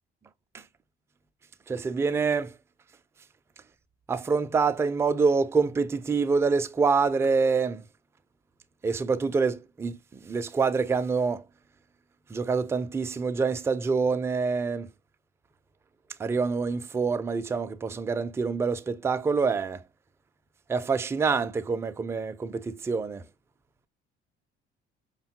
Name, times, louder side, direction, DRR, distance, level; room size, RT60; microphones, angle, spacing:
voice 1, 1.7-2.5 4.1-7.8 8.8-10.0 10.2-11.4 12.3-14.9 16.2-19.8 20.7-23.2, right 4 dB, 10° right, 0.3 m, -26 dB
5.2 x 2.2 x 2.7 m
figure-of-eight pair, 50°, 32 cm